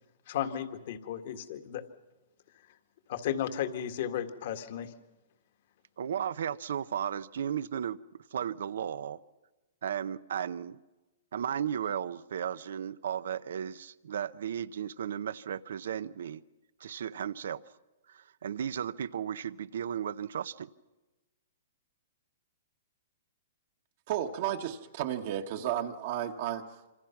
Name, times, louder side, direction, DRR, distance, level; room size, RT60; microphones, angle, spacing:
voice 1, 0.3-1.8 3.1-4.9, left 10 dB, 55° left, 8 dB, 1.9 m, -34 dB
voice 2, 6.0-8.0 8.3-9.2 9.8-10.8 11.3-16.4 16.8-17.6 18.1-20.7, right 9 dB, 75° right, 17 dB, 0.7 m, -35 dB
voice 3, 24.1-26.9, right 10 dB, 50° right, 4 dB, 1.4 m, -33 dB
26.5 x 25.5 x 5.9 m, 1.1 s
hypercardioid pair, 145°, 0 cm